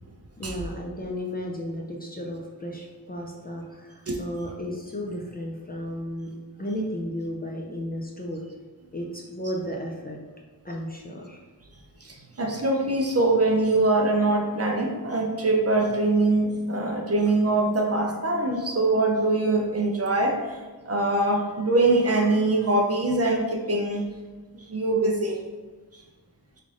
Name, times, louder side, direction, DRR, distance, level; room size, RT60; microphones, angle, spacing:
voice 1, 0.4-6.3 6.6-8.4 8.9-10.2 10.6-11.4, equal, 20° left, -1 dB, 0.5 m, -34 dB
voice 2, 12.0-20.6 20.8-24.1 24.5-25.4 25.9-26.0, right 2 dB, 35° right, 1 dB, 0.5 m, -23 dB
3.2 x 2.5 x 3.7 m, 1.3 s
wide cardioid pair, 75°, 42 cm